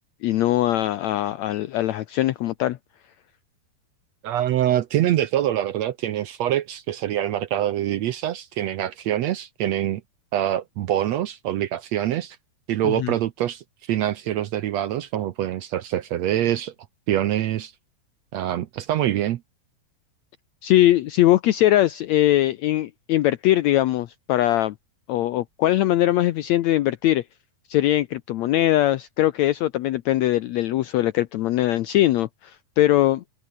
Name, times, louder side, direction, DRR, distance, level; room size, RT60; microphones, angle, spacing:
voice 1, 0.2-2.8 12.8-13.1 20.6-24.7 25.1-27.2 27.7-33.2, left 14 dB, 80° left, 1.6 m, -21 dB
voice 2, 4.2-10.0 10.3-12.4 12.7-16.7 17.1-17.7 18.3-19.4, right 12 dB, 75° right, 1.5 m, -25 dB
omnidirectional pair, 4.2 m